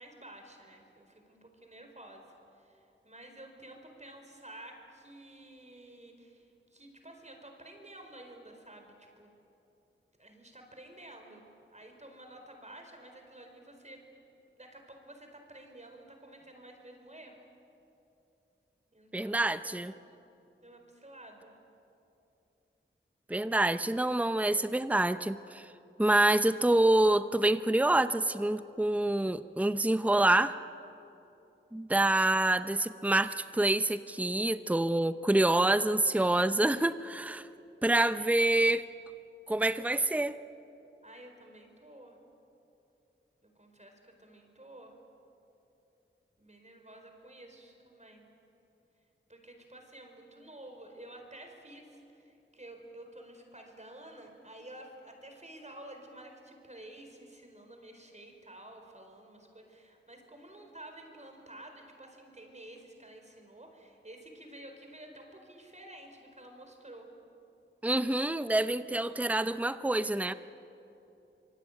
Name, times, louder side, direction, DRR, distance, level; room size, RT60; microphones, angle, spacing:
voice 1, 0.0-9.3 10.2-11.4 11.7-14.0 14.6-17.4 18.9-20.1 20.6-21.5 38.0-38.3 41.0-42.2 43.4-44.9 46.4-48.2 49.3-67.1, right 1 dB, 35° right, 3 dB, 4.5 m, -51 dB
voice 2, 19.1-19.9 23.3-25.6 26.0-30.5 31.7-37.5 37.8-38.9 39.5-40.3 67.8-70.3, right 1 dB, 5° right, 12 dB, 0.7 m, -27 dB
25.5 x 23.5 x 9.1 m, 2.8 s
wide cardioid pair, 65°, 21 cm